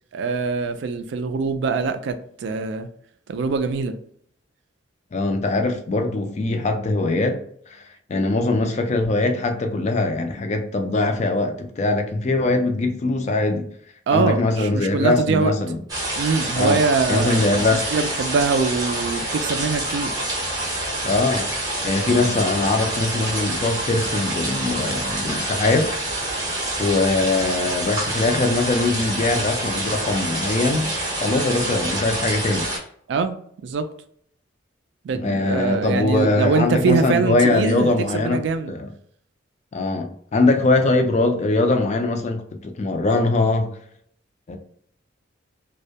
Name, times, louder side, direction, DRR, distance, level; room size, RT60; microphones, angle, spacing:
voice 1, 0.1-2.9 3.3-4.0 14.1-15.5 16.2-17.4 17.7-20.2 33.1-33.9 35.0-38.7, right 4 dB, 60° right, 0.3 m, -23 dB
voice 2, 5.1-7.4 7.7-7.8 8.1-13.7 14.1-15.8 16.6-16.8 17.1-17.9 21.0-21.5 21.8-25.9 26.8-30.9 31.2-32.7 35.1-38.4 38.7-38.9 39.7-43.7 44.5-44.6, left 2 dB, 35° left, 0.3 m, -21 dB
sound 1, 15.9-32.8, right 1 dB, 20° right, 0.6 m, -27 dB
2.2 x 2.1 x 2.7 m
head